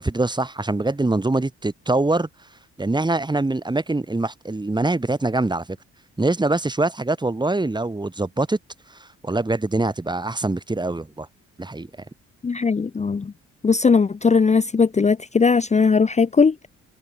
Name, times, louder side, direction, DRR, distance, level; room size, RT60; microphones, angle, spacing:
voice 1, 0.0-2.3 2.8-5.7 6.2-8.6 9.0-11.3 11.6-11.9, right 2 dB, 15° right, 2.4 m, -23 dB
voice 2, 12.4-13.3 13.6-16.5, left 5 dB, 25° left, 0.8 m, -18 dB
cardioid pair, 90°, 30 cm